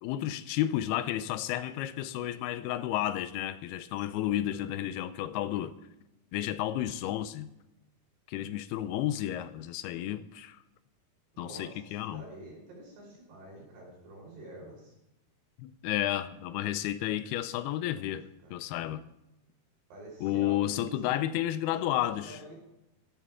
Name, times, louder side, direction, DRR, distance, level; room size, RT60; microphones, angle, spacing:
voice 1, 0.0-5.7 6.3-7.5 8.3-10.6 11.4-12.2 15.6-19.0 20.2-22.4, left 13 dB, 85° left, 2.6 m, -32 dB
voice 2, 11.4-14.9 17.6-18.1 18.4-18.5 19.9-21.4 21.7-22.6, right 1 dB, 85° right, 7.1 m, -48 dB
15.0 x 14.0 x 3.7 m
omnidirectional pair, 4.6 m